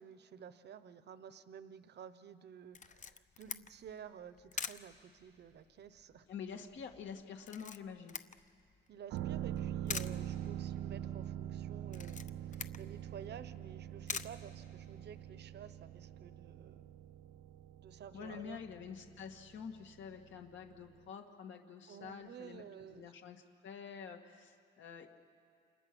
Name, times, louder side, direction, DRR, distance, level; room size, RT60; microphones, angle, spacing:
voice 1, 0.0-6.3 8.9-16.9 17.8-18.6 21.9-23.1, right 8 dB, 60° right, 13 dB, 1.1 m, -52 dB
Camera, 2.7-15.2, left 6 dB, 40° left, 0.9 m, -48 dB
voice 2, 6.3-8.2 18.1-25.1, left 7 dB, 70° left, 3 dB, 2.2 m, -48 dB
sound 1, 9.1-20.7 21.0-21.1, right 11 dB, 85° right, 0.8 m, -44 dB
29.5 x 27.0 x 6.3 m, 2.2 s
cardioid pair, 90°, 20 cm